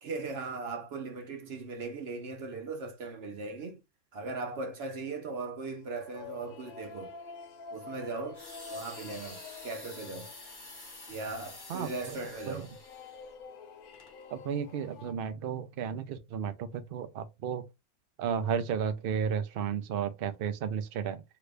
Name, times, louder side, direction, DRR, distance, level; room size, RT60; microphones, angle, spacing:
voice 1, 0.0-3.8 4.1-7.2 7.7-8.4 8.7-10.3 10.6-10.8 11.1-12.7, right 3 dB, 55° right, 0.8 m, -38 dB
sound 1, 5.7-15.1, left 5 dB, 80° left, 1.2 m, -48 dB
sound 2, 8.3-13.3 13.9-14.1, left 2 dB, 20° left, 0.6 m, -48 dB
voice 2, 11.7-12.2 12.5-12.6 14.3-17.6 18.2-21.2, right 7 dB, 85° right, 0.5 m, -33 dB
2.9 x 2.5 x 3.2 m
omnidirectional pair, 1.5 m